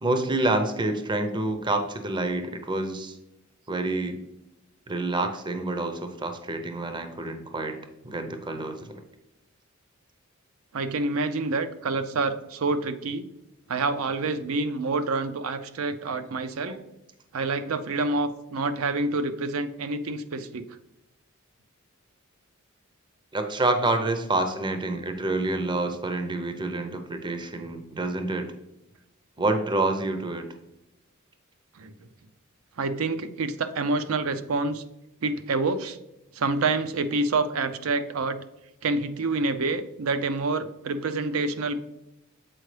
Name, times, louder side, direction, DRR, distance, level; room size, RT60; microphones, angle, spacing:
voice 1, 0.0-3.2 3.7-4.2 4.9-7.8 8.0-9.0 16.7-16.8 23.3-28.5 29.4-30.5, right 2 dB, 20° right, 7 dB, 0.6 m, -28 dB
voice 2, 10.7-13.3 13.7-16.7 17.3-20.6 31.8-31.9 32.8-34.8 35.2-36.0 36.3-38.4 38.8-41.8, right 3 dB, 80° right, 10 dB, 0.5 m, -27 dB
7.6 x 4.5 x 3.2 m, 0.93 s
head